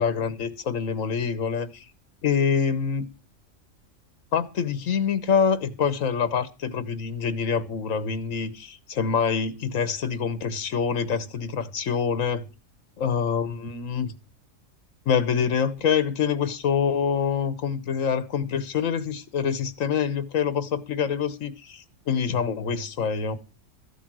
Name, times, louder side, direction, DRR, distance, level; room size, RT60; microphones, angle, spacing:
voice 1, 0.0-1.9 2.2-3.1 4.3-12.5 13.0-14.1 15.1-23.4, left 6 dB, 85° left, 1.5 m, -26 dB
14.0 x 8.4 x 6.2 m
omnidirectional pair, 1.3 m